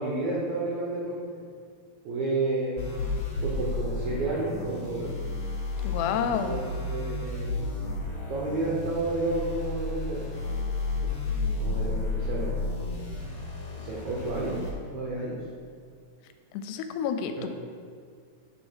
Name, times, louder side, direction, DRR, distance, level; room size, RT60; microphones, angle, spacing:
voice 1, 0.0-1.4 2.0-2.9 3.4-5.1 6.3-7.5 8.3-10.2 11.0-11.1 11.5-12.6 13.7-14.6 14.9-15.4 17.4-17.5, right 2 dB, 85° right, -5 dB, 1.6 m, -31 dB
sound 1, 2.8-14.7, left 3 dB, 45° left, 1.8 m, -32 dB
voice 2, 5.8-6.6 16.5-17.5, left 7 dB, 85° left, 8 dB, 2.6 m, -29 dB
8.9 x 3.6 x 6.1 m, 2.1 s
omnidirectional pair, 4.8 m